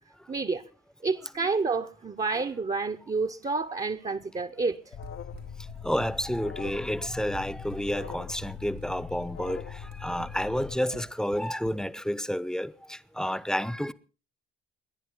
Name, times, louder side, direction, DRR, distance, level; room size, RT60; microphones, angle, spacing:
voice 1, 0.3-0.6 1.0-4.8, right 4 dB, 20° right, 1.0 m, -29 dB
Alarm, 4.9-10.7, left 8 dB, 40° left, 0.8 m, -41 dB
Run, 5.0-12.1, right 7 dB, 70° right, 1.3 m, -49 dB
voice 2, 5.8-13.9, equal, ahead, 0.9 m, -30 dB
29.5 x 10.5 x 3.9 m
hypercardioid pair, 50°, 34 cm